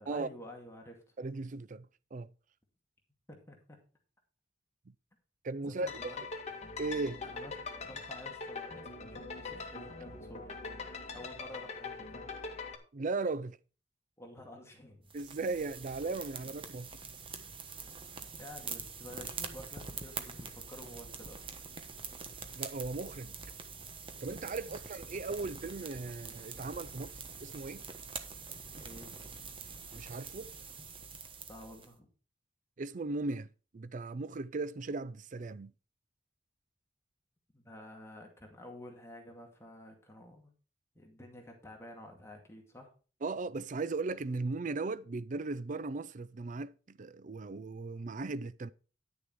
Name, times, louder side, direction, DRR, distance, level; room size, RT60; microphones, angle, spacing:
voice 1, 0.0-1.1 3.3-3.6 5.7-6.2 7.2-7.5 7.8-10.5 11.1-12.2 14.2-15.1 18.2-21.5 24.7-24.8 28.8-29.3 31.5-32.1 37.5-40.5 41.0-42.9, left 1 dB, 15° left, 2.2 m, -50 dB
voice 2, 1.2-2.3 5.4-6.1 6.8-7.2 12.9-13.6 15.1-16.9 22.5-23.3 24.2-27.8 29.9-30.5 32.8-33.5 33.7-35.7 43.2-48.7, right 3 dB, 45° right, 0.5 m, -37 dB
sound 1, 5.9-12.8, left 4 dB, 40° left, 1.8 m, -42 dB
sound 2, 15.1-31.9, right 5 dB, 30° right, 1.2 m, -45 dB
10.5 x 6.8 x 4.7 m
head